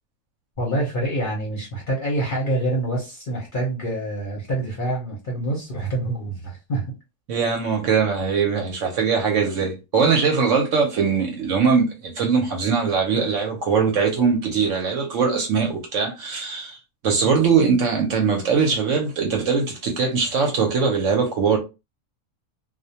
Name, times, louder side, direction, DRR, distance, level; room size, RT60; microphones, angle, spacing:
voice 1, 0.6-6.8, right 1 dB, 45° left, 0.7 m, -26 dB
voice 2, 7.3-16.8 17.0-21.6, right 5 dB, 70° right, 0.9 m, -21 dB
2.4 x 2.1 x 2.7 m
omnidirectional pair, 1.5 m